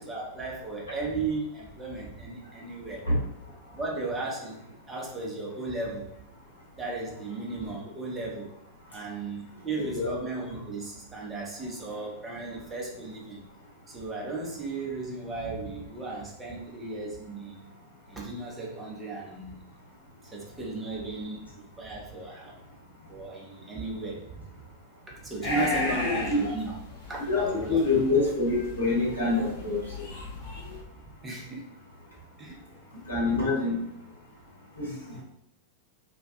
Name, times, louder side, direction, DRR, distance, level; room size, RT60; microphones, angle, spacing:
voice 1, 0.0-3.1 3.7-4.6 4.9-6.1 6.8-8.5 8.9-13.4 13.9-17.6 18.1-19.6 20.3-22.6 23.1-24.5 25.1-26.8 27.1-27.8 31.2-31.7 32.4-32.6 35.1-35.2, right 3 dB, 15° right, -3 dB, 0.7 m, -35 dB
voice 2, 9.8-10.1 25.5-26.4 27.3-29.8 33.1-33.8 34.8-34.9, left 3 dB, 80° left, -6 dB, 0.9 m, -26 dB
sound 1, 25.4-30.8, left 2 dB, 40° left, 0.6 m, -35 dB
2.3 x 2.2 x 2.6 m, 0.75 s
figure-of-eight pair, 90°, 0 cm